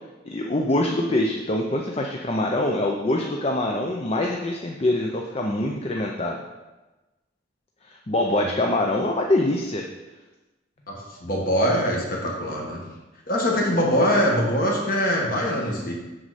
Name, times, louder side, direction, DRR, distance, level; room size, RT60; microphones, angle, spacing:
voice 1, 0.3-6.4 7.8-9.8, left 1 dB, 30° left, 1 dB, 0.5 m, -24 dB
voice 2, 11.2-12.8 13.3-15.9, equal, 50° left, -2 dB, 1.8 m, -23 dB
7.6 x 6.2 x 4.2 m, 1.1 s
head